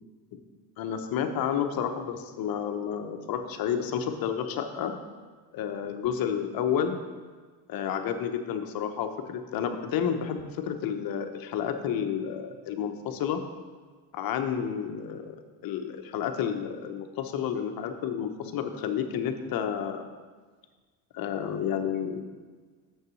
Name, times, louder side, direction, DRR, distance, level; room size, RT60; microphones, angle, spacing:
voice 1, 0.8-5.0 5.5-7.0 7.7-13.4 14.1-15.4 15.6-20.1 21.1-22.2, left 8 dB, 50° left, 6 dB, 1.1 m, -30 dB
6.6 x 6.6 x 6.3 m, 1.4 s
hypercardioid pair, 75°, 44 cm